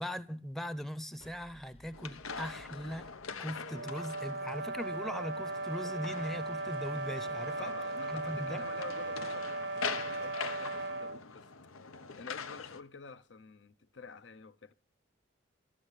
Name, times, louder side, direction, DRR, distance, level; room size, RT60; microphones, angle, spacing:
voice 1, 0.0-3.1 3.4-7.7 8.1-8.6, equal, ahead, 0.7 m, -40 dB
sound 1, 1.2-4.4, equal, 30° left, 1.0 m, -60 dB
sound 2, 1.9-12.8, left 5 dB, 90° left, 1.0 m, -43 dB
sound 3, 3.7-11.2, right 2 dB, 55° right, 0.7 m, -37 dB
voice 2, 7.6-11.5 12.1-14.7, left 4 dB, 60° left, 0.7 m, -49 dB
13.5 x 7.1 x 8.2 m
head